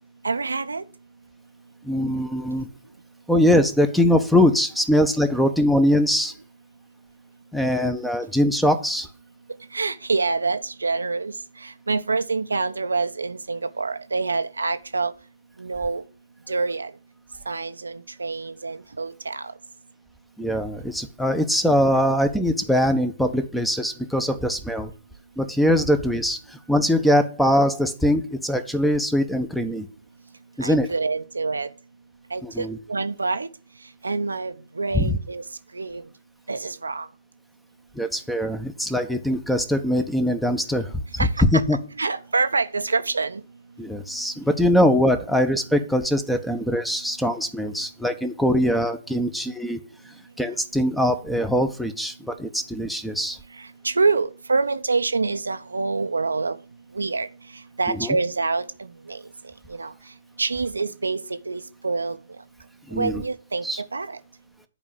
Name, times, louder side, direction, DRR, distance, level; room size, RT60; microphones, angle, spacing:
voice 1, 0.2-0.8 9.7-11.3 11.6-15.1 15.6-16.0 16.5-16.9 17.5-19.4 30.6-31.7 32.3-33.5 34.0-35.4 35.7-36.0 36.5-37.1 41.2-41.3 42.0-43.4 53.8-56.6 56.9-57.3 57.8-58.6 59.1-59.2 59.7-59.9 60.4-62.2 62.9-63.6 63.9-64.2, right 4 dB, 75° right, 0.8 m, -26 dB
voice 2, 1.8-2.7 3.3-6.3 7.5-9.1 20.4-24.9 25.4-29.9 30.6-30.9 32.4-32.8 34.9-35.2 37.9-41.8 43.8-49.8 50.4-53.4 57.9-58.2 62.9-63.2 63.6-63.8, equal, ahead, 1.2 m, -22 dB
11.0 x 5.0 x 7.6 m
figure-of-eight pair, 120°, 0 cm